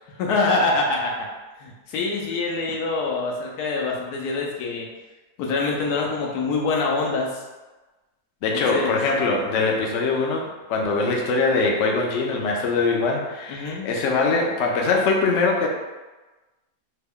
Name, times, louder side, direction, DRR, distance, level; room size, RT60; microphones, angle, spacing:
voice 1, 0.2-1.3 1.6-4.9 5.4-7.4 8.5-9.0 13.5-13.9, left 3 dB, 85° left, -1 dB, 1.2 m, -25 dB
voice 2, 8.4-15.7, left 3 dB, 65° left, 0 dB, 0.8 m, -22 dB
3.4 x 2.1 x 3.5 m, 1.2 s
omnidirectional pair, 1.6 m